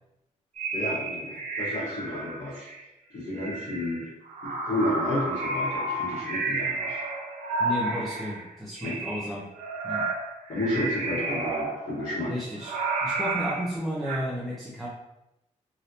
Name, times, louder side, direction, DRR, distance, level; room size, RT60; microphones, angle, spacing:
sound 1, 0.6-2.8 3.3-8.5 8.8-14.2, right 2 dB, 70° right, 0.5 m, -31 dB
voice 1, 0.7-2.7 3.1-4.1 4.4-7.0 8.8-9.0 10.5-12.3, left 1 dB, 80° left, -11 dB, 1.1 m, -31 dB
voice 2, 7.6-9.5 9.8-10.1 12.3-12.7 13.0-14.9, equal, ahead, -6 dB, 0.4 m, -33 dB
3.2 x 2.6 x 2.7 m, 0.89 s
wide cardioid pair, 170°, 13 cm